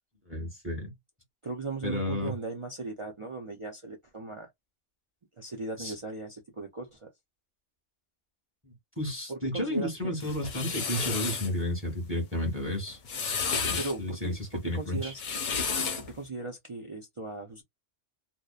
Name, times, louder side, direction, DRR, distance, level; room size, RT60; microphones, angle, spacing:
voice 1, 0.3-0.9 1.8-2.3 5.8-5.9 8.6-13.0 13.6-15.1, left 1 dB, 10° right, 1.0 m, -32 dB
voice 2, 1.4-4.5 5.4-7.1 9.3-10.1 13.8-14.4 14.7-15.2 16.0-17.6, right 3 dB, 50° right, 0.3 m, -37 dB
sound 1, 10.2-11.5 12.9-13.9 15.0-16.1, left 5 dB, 50° left, 0.7 m, -31 dB
2.6 x 2.1 x 2.3 m
omnidirectional pair, 1.2 m